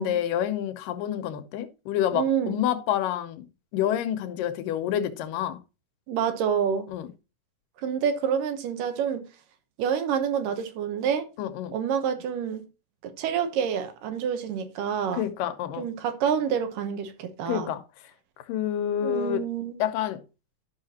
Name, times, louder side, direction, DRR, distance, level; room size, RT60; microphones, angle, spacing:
voice 1, 0.0-3.5 3.7-5.6 6.9-7.1 11.4-11.8 15.1-15.9 17.5-17.8 18.5-19.4 19.8-20.2, left 10 dB, 85° left, 2.5 m, -28 dB
voice 2, 2.1-2.6 6.1-6.9 7.8-9.2 9.8-11.3 11.7-12.6 13.0-15.2 15.8-17.7 19.0-19.8, right 7 dB, 80° right, 2.7 m, -28 dB
12.0 x 5.8 x 2.8 m
omnidirectional pair, 3.8 m